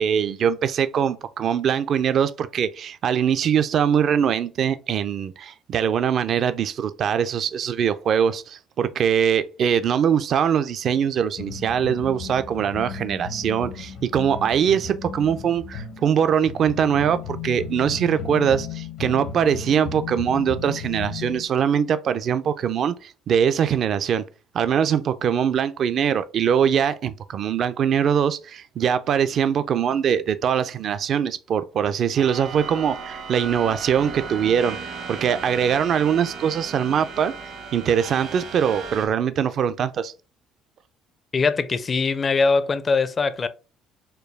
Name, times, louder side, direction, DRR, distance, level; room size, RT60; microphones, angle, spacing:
voice 1, 0.0-24.2 24.5-34.8 35.1-37.3 37.7-40.1, right 8 dB, 55° right, 0.4 m, -22 dB
sound 1, 11.4-21.5, left 6 dB, 70° left, 0.9 m, -35 dB
sound 2, 32.2-39.1, right 5 dB, 70° right, 1.0 m, -36 dB
voice 2, 41.3-43.5, left 4 dB, 35° left, 0.4 m, -21 dB
4.5 x 2.3 x 3.3 m
supercardioid pair, 80°, 0 cm